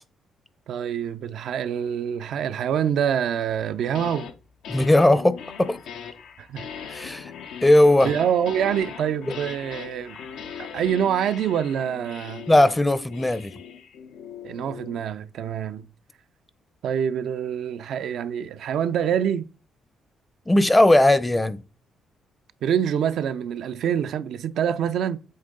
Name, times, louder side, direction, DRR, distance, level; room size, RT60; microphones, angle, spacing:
voice 1, 0.7-4.3 6.4-6.7 8.0-10.2 10.7-12.5 14.4-15.9 16.8-19.5 22.6-25.2, right 8 dB, 75° right, 0.4 m, -26 dB
sound 1, 3.7-4.3 4.6-15.1, left 7 dB, 80° left, 0.7 m, -39 dB
voice 2, 4.7-5.8 6.9-7.3 7.6-8.1 12.5-13.5 20.5-21.6, left 1 dB, 15° left, 0.6 m, -18 dB
7.8 x 3.6 x 3.7 m
supercardioid pair, 70°, 0 cm